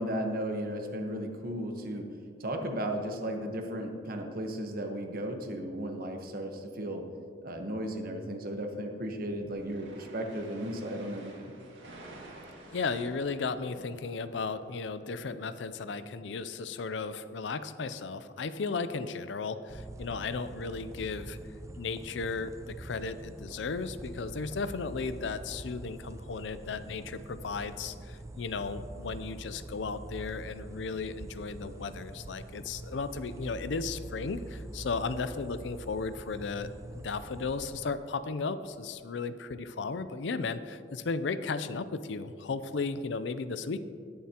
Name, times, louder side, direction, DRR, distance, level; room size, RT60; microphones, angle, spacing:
voice 1, 0.0-2.1 2.4-7.0 7.4-11.5, right 1 dB, 55° right, 4 dB, 1.1 m, -35 dB
sound 1, 9.3-14.9, right 1 dB, 90° right, 2.1 m, -51 dB
voice 2, 12.7-21.4 21.8-36.7 36.9-43.8, left 4 dB, 75° left, 12 dB, 0.5 m, -35 dB
sound 2, 19.7-37.9, right 2 dB, 15° right, 0.3 m, -45 dB
19.0 x 7.3 x 2.9 m, 2.3 s
head